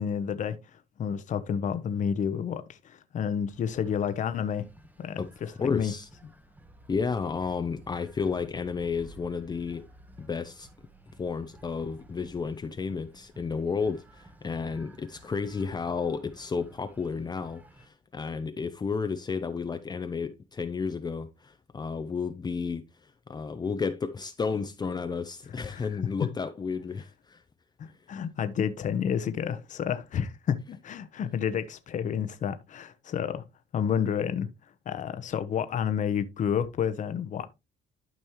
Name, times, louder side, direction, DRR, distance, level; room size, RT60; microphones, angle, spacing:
voice 1, 0.0-4.7 5.0-5.9 25.7-25.9 27.8-33.5 33.7-34.5 34.9-37.5, left 8 dB, 45° left, 1.0 m, -30 dB
sound 1, 3.5-17.9, right 1 dB, 10° right, 1.1 m, -54 dB
voice 2, 5.2-6.1 6.9-9.8 10.2-10.7 11.2-27.4 27.9-28.0, left 5 dB, 25° left, 0.7 m, -32 dB
12.0 x 5.3 x 3.1 m
cardioid pair, 110°, 17 cm